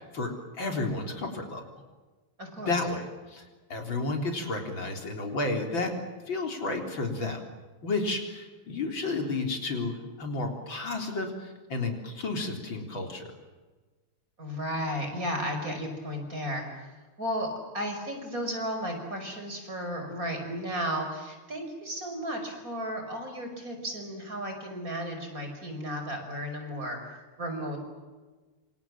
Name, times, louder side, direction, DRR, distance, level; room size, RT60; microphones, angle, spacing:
voice 1, 0.0-1.8 2.7-6.0 6.3-7.4 7.8-13.3, left 3 dB, 60° left, 3 dB, 4.5 m, -32 dB
voice 2, 2.4-2.7 14.4-16.9 17.2-17.5 17.7-27.8, equal, 40° right, 4 dB, 6.1 m, -34 dB
27.5 x 27.0 x 7.4 m, 1.3 s
omnidirectional pair, 2.4 m